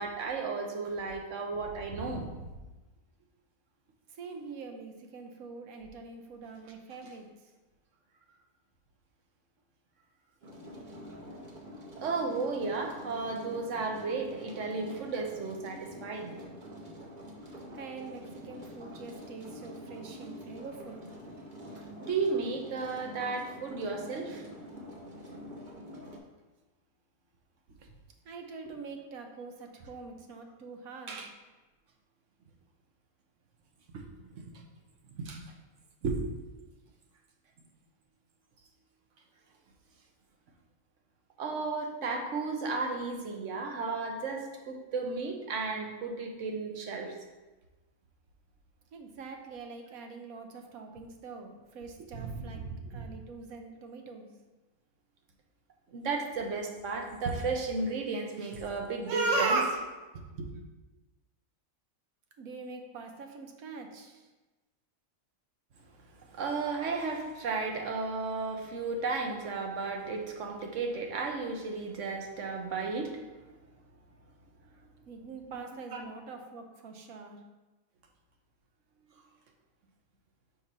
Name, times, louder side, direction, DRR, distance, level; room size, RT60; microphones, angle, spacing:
voice 1, 0.0-2.3 12.0-16.3 22.0-24.4 28.7-28.8 31.1-31.3 35.2-35.4 36.0-36.2 41.4-47.2 52.1-53.1 55.9-59.9 60.4-60.5 66.3-73.2 75.9-76.1, right 4 dB, 65° right, 2 dB, 1.2 m, -33 dB
voice 2, 4.1-7.5 17.7-21.1 27.8-27.9 28.2-31.3 48.9-52.6 52.9-54.3 62.4-64.3 75.1-77.4, right 4 dB, 85° right, 4 dB, 1.3 m, -45 dB
Water mill - loud single gear, 10.4-26.2, equal, 40° right, 1.0 m, -46 dB
6.1 x 3.1 x 5.4 m, 1.2 s
omnidirectional pair, 1.5 m